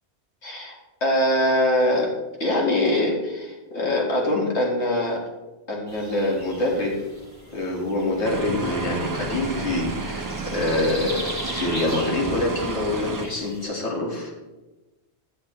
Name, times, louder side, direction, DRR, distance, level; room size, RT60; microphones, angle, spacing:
voice 1, 0.4-0.8 1.0-2.1 2.4-5.2 5.7-7.0 7.5-14.3, left 1 dB, 90° left, -2 dB, 2.0 m, -24 dB
sound 1, 5.9-13.6, right 1 dB, 15° left, 1.7 m, -39 dB
sound 2, 8.2-13.3, right 3 dB, 30° right, 0.4 m, -31 dB
10.0 x 6.5 x 3.1 m, 1.1 s
omnidirectional pair, 1.1 m